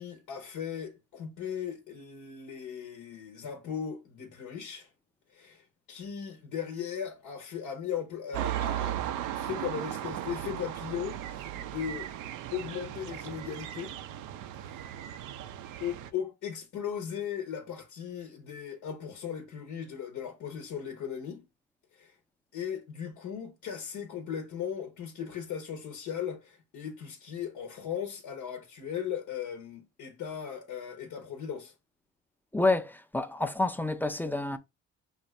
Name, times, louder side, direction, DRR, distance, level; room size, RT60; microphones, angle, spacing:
voice 1, 0.0-4.9 5.3-9.0 9.3-12.1 12.5-13.9 14.6-14.9 15.8-21.4 21.9-22.1 22.5-31.7, left 8 dB, 80° left, 1.0 m, -37 dB
sound 1, 8.3-16.1, right 12 dB, 90° right, 0.5 m, -36 dB
voice 2, 32.5-34.6, left 2 dB, 5° left, 0.5 m, -28 dB
5.4 x 2.6 x 3.1 m
cardioid pair, 90°, 30 cm